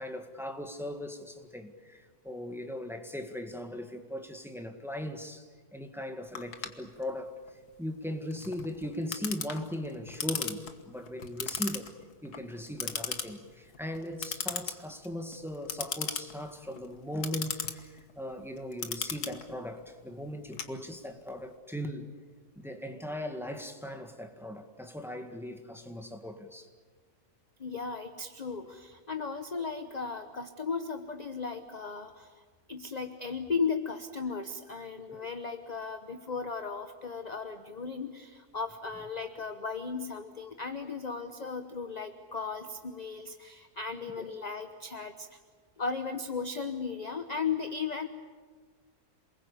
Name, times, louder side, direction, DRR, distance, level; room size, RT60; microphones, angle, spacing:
voice 1, 0.0-7.3 7.8-11.9 12.2-22.1 22.6-26.7 34.8-34.9 35.1-35.3 44.2-44.3, left 1 dB, ahead, 1.9 m, -39 dB
Clock, 6.4-21.3, left 6 dB, 75° left, 2.0 m, -38 dB
voice 2, 27.6-32.4 32.7-45.4 45.8-48.1, left 5 dB, 30° left, 1.1 m, -36 dB
28.0 x 21.0 x 8.6 m
omnidirectional pair, 1.7 m